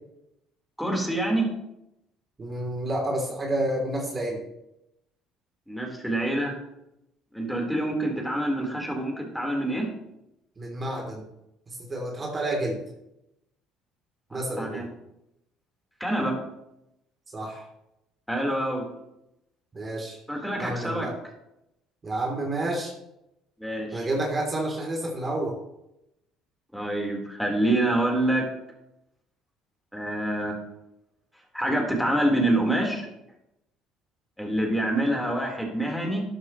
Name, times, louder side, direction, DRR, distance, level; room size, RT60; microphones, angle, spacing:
voice 1, 0.8-1.5 5.7-6.6 7.3-9.9 14.6-14.8 16.0-16.4 18.3-18.9 20.3-21.1 23.6-24.1 26.7-28.5 29.9-30.6 31.5-33.1 34.4-36.2, right 1 dB, ahead, 0 dB, 4.2 m, -26 dB
voice 2, 2.4-4.4 10.6-11.2 11.7-12.8 14.3-14.8 17.3-17.6 19.7-20.2 20.6-21.2 22.0-22.9 23.9-25.6, right 1 dB, 30° right, 0 dB, 3.3 m, -29 dB
13.0 x 11.0 x 3.2 m, 0.86 s
hypercardioid pair, 60°, 0 cm